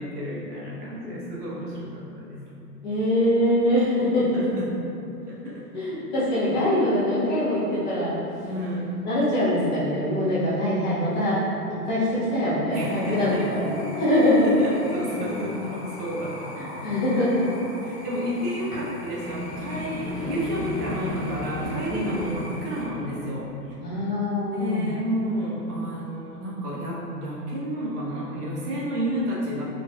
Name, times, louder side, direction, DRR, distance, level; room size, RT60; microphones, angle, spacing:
voice 1, 0.0-2.4 4.3-4.7 5.2-6.0 8.5-8.9 12.7-13.5 14.4-16.6 17.2-17.3 17.8-23.5 23.9-24.0 24.5-29.6, equal, 70° right, -5 dB, 1.0 m, -31 dB
voice 2, 2.8-4.2 5.7-8.1 9.0-11.4 11.9-13.7 14.0-14.5 16.6-17.4 21.9-22.3 23.8-24.9, left 1 dB, 30° left, -12 dB, 1.2 m, -23 dB
sound 1, 12.1-16.5 19.0-24.0, left 2 dB, 30° right, 0.4 m, -35 dB
sound 2, 12.7-22.8, left 1 dB, 80° left, 1.3 m, -41 dB
3.9 x 3.3 x 2.2 m, 2.7 s
hypercardioid pair, 170°, 47 cm